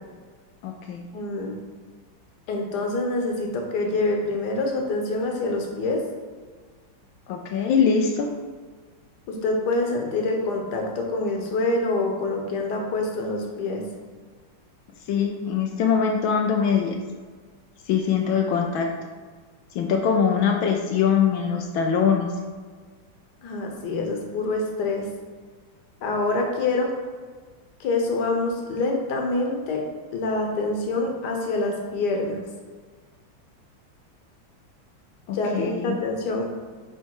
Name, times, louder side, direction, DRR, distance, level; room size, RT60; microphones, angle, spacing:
voice 1, 0.6-1.0 7.3-8.3 15.1-17.0 17.9-18.9 19.7-22.3 35.3-35.9, left 6 dB, 85° left, 2 dB, 1.5 m, -22 dB
voice 2, 1.1-1.6 2.5-6.0 9.3-13.8 23.4-25.1 26.0-26.9 27.8-29.8 30.1-32.4 35.3-36.5, left 2 dB, 60° left, 1 dB, 1.6 m, -26 dB
9.6 x 3.3 x 4.8 m, 1.5 s
omnidirectional pair, 2.2 m